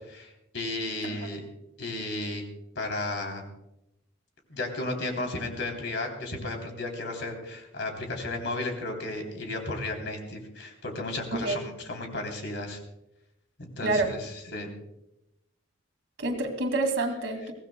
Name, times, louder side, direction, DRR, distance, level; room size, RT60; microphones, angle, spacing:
voice 1, 0.1-1.4 1.8-2.4 2.8-3.4 4.5-12.8 13.6-14.7, left 2 dB, 60° left, 3 dB, 3.3 m, -34 dB
voice 2, 13.8-14.1 16.2-17.5, right 2 dB, 70° right, 4 dB, 2.2 m, -27 dB
23.0 x 17.0 x 2.2 m, 0.87 s
head